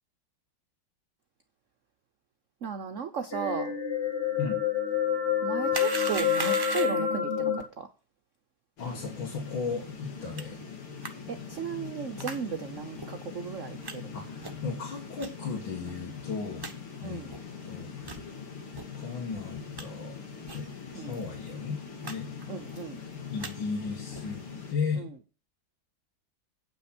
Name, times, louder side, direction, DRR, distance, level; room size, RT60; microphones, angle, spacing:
voice 1, 2.6-3.7 5.4-7.9 11.3-14.2 17.0-17.3 20.9-21.3 22.5-23.0 25.0-25.1, right 6 dB, 65° right, 0.7 m, -36 dB
sound 1, 3.3-7.6, left 8 dB, 30° left, 2.3 m, -28 dB
sound 2, 5.7-7.1 10.4-10.5 11.0-11.1 12.2-12.4 13.0-13.1 13.8-13.9 14.4-14.7 15.2-15.3 15.9-16.0 16.2-16.3 16.6-16.7 17.3-17.4 18.0-18.2 18.7-18.9 19.3-19.8 20.5-20.7 20.9-21.0 21.3-21.5 22.0-22.1 22.4-22.8 23.2-23.5 24.1-24.4, right 3 dB, 25° right, 0.4 m, -38 dB
sound 3, 8.8-24.7, left 6 dB, 85° left, 3.0 m, -42 dB
voice 2, 8.8-10.6 14.1-16.7 17.0-17.3 17.6-18.2 18.9-22.3 23.3-25.1, left 5 dB, 65° left, 2.6 m, -36 dB
8.7 x 6.1 x 6.0 m
omnidirectional pair, 2.3 m